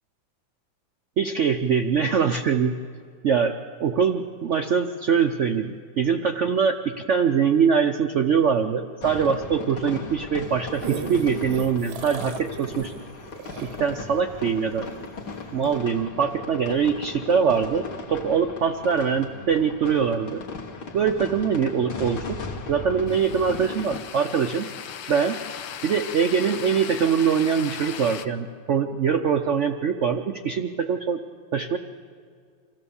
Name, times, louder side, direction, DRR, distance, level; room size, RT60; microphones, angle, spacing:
voice 1, 1.2-2.8 3.2-12.9 13.6-14.9 15.5-20.4 20.9-22.4 22.7-24.7 25.1-25.4 25.8-31.2 31.5-31.8, right 6 dB, 85° right, 6 dB, 0.6 m, -23 dB
sound 1, 9.0-24.0, left 4 dB, 60° left, 1.9 m, -37 dB
sound 2, 10.4-15.1 15.6-15.7, right 7 dB, 65° right, 1.1 m, -36 dB
sound 3, 23.1-28.3, left 9 dB, 75° left, 1.5 m, -37 dB
26.0 x 15.0 x 7.0 m, 2.2 s
omnidirectional pair, 2.1 m